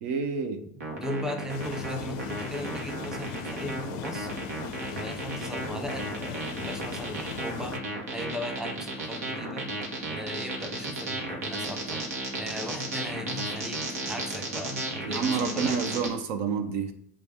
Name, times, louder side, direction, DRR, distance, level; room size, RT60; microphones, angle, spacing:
voice 1, 0.0-0.6 15.1-16.9, right 5 dB, 60° right, 7 dB, 0.5 m, -29 dB
voice 2, 0.6-4.3 4.8-7.8 8.1-9.7 10.1-12.1 12.4-15.8, left 1 dB, 5° right, 5 dB, 0.7 m, -37 dB
sound 1, 0.8-16.1, right 2 dB, 80° right, 1.0 m, -34 dB
sound 2, 1.5-7.8, left 9 dB, 60° left, 0.4 m, -40 dB
6.8 x 2.3 x 3.3 m, 0.65 s
hypercardioid pair, 85°, 8 cm